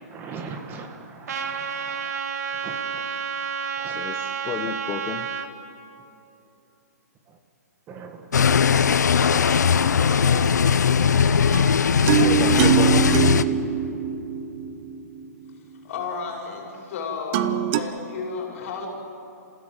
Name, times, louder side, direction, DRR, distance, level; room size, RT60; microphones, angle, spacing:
voice 1, 0.1-2.1 2.6-2.8 3.8-4.0 7.9-9.1, right 4 dB, 20° right, 5 dB, 1.8 m, -40 dB
Trumpet, 1.3-5.5, right 7 dB, 65° right, 2.0 m, -30 dB
voice 2, 3.9-5.3 12.0-13.6, left 8 dB, 25° left, 6 dB, 1.0 m, -32 dB
sound 1, 8.3-13.4, left 6 dB, 80° left, 0.8 m, -19 dB
voice 3, 9.1-10.6 15.8-18.9, left 4 dB, 50° left, 0 dB, 5.5 m, -33 dB
sound 2, 11.5-15.5 17.3-17.8, right 12 dB, 35° right, 1.1 m, -23 dB
28.0 x 16.0 x 8.0 m, 2.8 s
hypercardioid pair, 140°, 9 cm